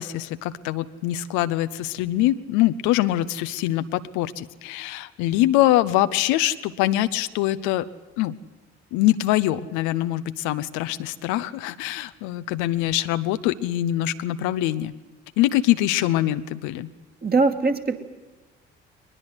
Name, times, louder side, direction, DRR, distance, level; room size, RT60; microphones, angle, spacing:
voice 1, 0.0-7.8 8.2-8.3 8.9-14.9 15.4-16.9, left 14 dB, 65° left, 12 dB, 0.9 m, -23 dB
voice 2, 17.2-18.0, right 3 dB, 30° right, 4 dB, 2.5 m, -21 dB
21.5 x 20.0 x 8.2 m, 1.2 s
figure-of-eight pair, 50°, 32 cm